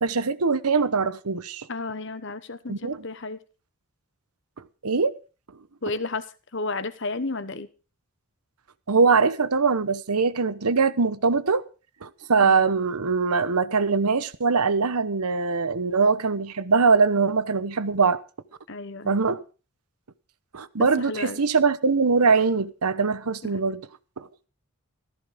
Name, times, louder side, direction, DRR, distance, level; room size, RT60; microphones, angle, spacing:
voice 1, 0.0-1.6 2.7-3.0 4.8-5.1 8.9-11.6 12.0-18.2 19.0-19.4 20.5-23.8 24.2-24.3, right 4 dB, 85° right, 1.0 m, -22 dB
voice 2, 1.7-3.4 5.8-6.3 6.5-7.7 12.4-12.6 18.7-19.2 20.8-21.4 23.4-23.6, left 3 dB, 55° left, 1.2 m, -32 dB
14.5 x 14.0 x 5.1 m
head